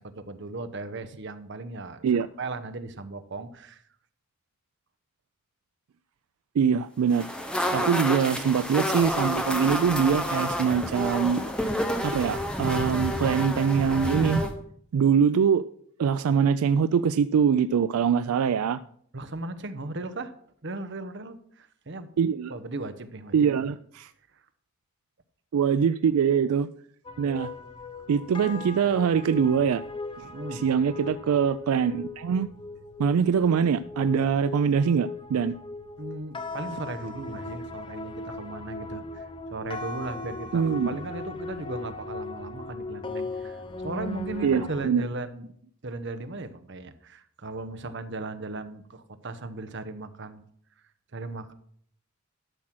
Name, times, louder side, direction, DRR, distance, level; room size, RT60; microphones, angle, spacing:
voice 1, 0.0-2.0 2.4-3.8 7.6-7.9 19.1-20.3 20.6-22.1 22.5-23.5 24.3-24.4 30.2-30.6 36.0-45.5 45.8-50.4 51.1-51.5, right 2 dB, 55° right, 9 dB, 0.9 m, -37 dB
voice 2, 6.6-7.3 7.7-11.4 12.0-14.4 14.9-15.7 16.0-18.8 22.2-22.5 23.3-24.1 25.5-26.7 27.2-27.5 28.1-29.8 30.2-32.5 33.0-35.6 40.5-40.9 44.4-45.0, right 7 dB, 80° right, 14 dB, 0.3 m, -23 dB
sound 1, 7.1-14.5, equal, 5° left, 1.0 m, -29 dB
sound 2, 27.0-44.9, left 2 dB, 25° left, 0.6 m, -38 dB
12.5 x 6.2 x 6.0 m, 0.63 s
head